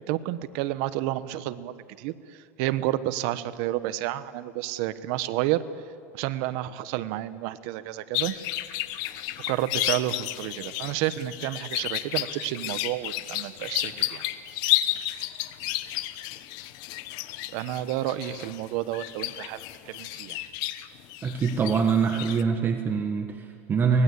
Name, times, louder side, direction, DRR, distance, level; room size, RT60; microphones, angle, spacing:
voice 1, 0.1-5.6 6.1-8.3 9.5-14.2 17.5-20.4, right 14 dB, 65° right, 13 dB, 1.2 m, -30 dB
sound 1, 8.1-22.4, left 15 dB, 60° left, 1.2 m, -32 dB
voice 2, 21.2-24.0, right 5 dB, 25° right, 5 dB, 1.5 m, -24 dB
24.0 x 19.5 x 8.5 m, 2.3 s
supercardioid pair, 125°, 8 cm